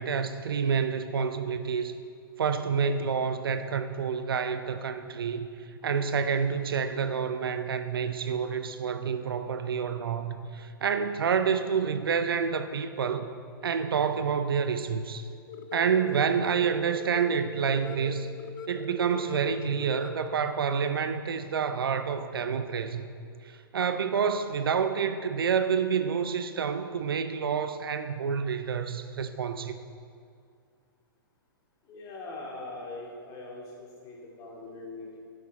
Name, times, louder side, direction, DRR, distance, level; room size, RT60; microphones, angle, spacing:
voice 1, 0.0-1.9 2.4-5.5 5.8-13.3 13.6-15.3 15.7-18.3 18.7-23.1 23.5-29.8, right 6 dB, 75° right, 10 dB, 0.6 m, -28 dB
sound 1, 15.5-20.5, left 5 dB, 65° left, 0.7 m, -42 dB
voice 2, 31.9-35.2, left 2 dB, 30° left, -3 dB, 2.3 m, -41 dB
10.0 x 8.2 x 4.2 m, 2.2 s
hypercardioid pair, 120°, 12 cm